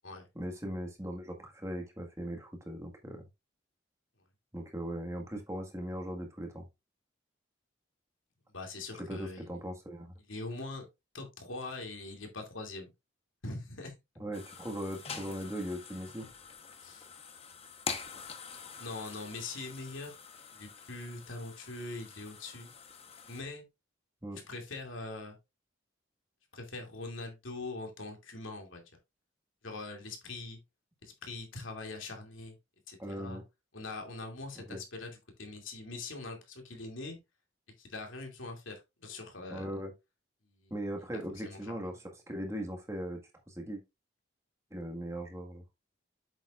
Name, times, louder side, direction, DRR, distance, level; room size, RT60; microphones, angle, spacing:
voice 1, 0.3-3.2 4.5-6.7 9.0-10.1 14.2-16.3 24.2-24.4 33.0-33.4 34.5-34.8 39.5-39.9 40.7-42.0 42.3-43.8 44.7-45.6, equal, 15° right, 1.6 m, -39 dB
voice 2, 8.5-9.5 10.3-10.9 11.1-12.9 13.4-13.9 16.8-17.1 18.8-20.2 20.5-22.7 23.3-23.6 24.5-25.4 26.5-28.8 29.6-30.6 31.0-32.6 32.9-33.4 33.7-37.2 37.8-39.7 40.4-40.7 41.4-41.9, left 2 dB, 85° left, 2.6 m, -42 dB
sound 1, 14.3-23.4, left 5 dB, 30° left, 1.0 m, -45 dB
8.2 x 7.2 x 2.5 m
head